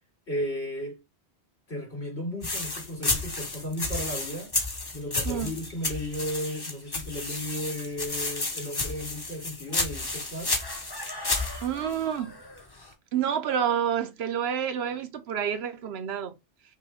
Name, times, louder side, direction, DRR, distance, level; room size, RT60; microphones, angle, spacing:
voice 1, 0.3-1.0 1.7-4.5 4.9-10.5, equal, 80° left, 2.7 m, -34 dB
sound 1, 2.4-12.9, left 2 dB, 25° left, 0.8 m, -32 dB
voice 2, 5.2-5.6 11.6-12.4 13.1-16.4, right 8 dB, 70° right, 0.9 m, -28 dB
5.5 x 2.2 x 3.4 m
omnidirectional pair, 1.1 m